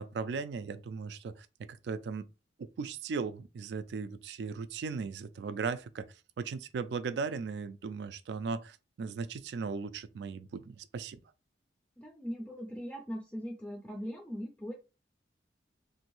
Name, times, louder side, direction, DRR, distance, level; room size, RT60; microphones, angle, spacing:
voice 1, 0.0-2.3 2.6-6.1 6.4-11.2, right 5 dB, 75° right, 0.3 m, -37 dB
voice 2, 12.0-14.7, equal, 5° left, 0.4 m, -40 dB
2.9 x 2.6 x 3.0 m
head